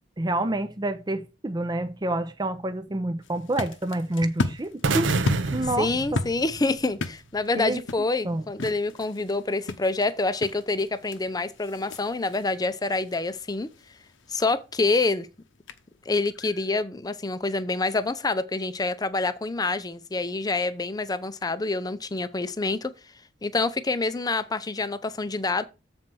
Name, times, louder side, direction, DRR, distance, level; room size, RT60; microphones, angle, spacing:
voice 1, 0.2-5.1 5.5-6.2 7.5-8.5, right 1 dB, 20° right, 0.6 m, -28 dB
sound 1, 3.2-16.8, left 2 dB, 80° left, 0.8 m, -36 dB
sound 2, 4.8-6.9, right 3 dB, 85° right, 0.8 m, -27 dB
voice 2, 5.8-13.7 14.3-15.3 16.1-22.9 23.4-25.6, left 3 dB, 20° left, 0.6 m, -27 dB
7.5 x 4.3 x 6.1 m
head